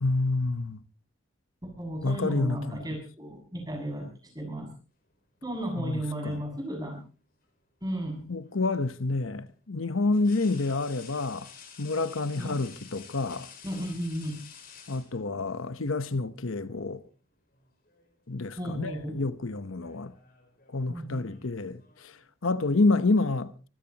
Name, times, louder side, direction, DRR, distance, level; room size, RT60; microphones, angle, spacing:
voice 1, 0.0-0.8 2.0-2.8 5.8-6.4 8.3-11.5 11.8-13.5 14.9-17.0 18.3-20.1 20.7-22.1 22.4-23.5, left 3 dB, 80° left, 0.9 m, -28 dB
voice 2, 1.6-4.1 4.4-4.7 5.4-7.0 7.8-8.3 12.4-12.5 13.6-14.4 18.6-19.3 20.9-21.3, right 1 dB, 20° right, 6.7 m, -34 dB
sound 1, 5.8-6.7 8.4-8.6 10.1-15.6 16.8-17.0 17.4-18.1 18.4-18.8 19.6-22.3, left 7 dB, 45° left, 4.9 m, -51 dB
24.0 x 16.0 x 2.9 m
head